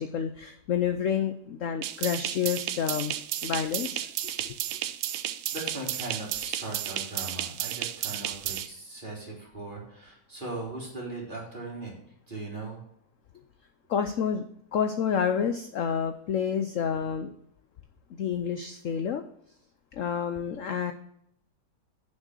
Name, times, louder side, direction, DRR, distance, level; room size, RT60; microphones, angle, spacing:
voice 1, 0.0-3.1 3.4-4.5 13.9-14.4 14.7-17.3 18.1-19.2 19.9-20.9, left 7 dB, 60° left, 8 dB, 0.9 m, -29 dB
sound 1, 1.8-8.7, right 12 dB, 80° right, 1.2 m, -33 dB
voice 2, 5.5-11.9 12.3-12.8, right 2 dB, 25° right, -4 dB, 3.4 m, -39 dB
7.5 x 6.4 x 6.3 m, 0.71 s
omnidirectional pair, 1.9 m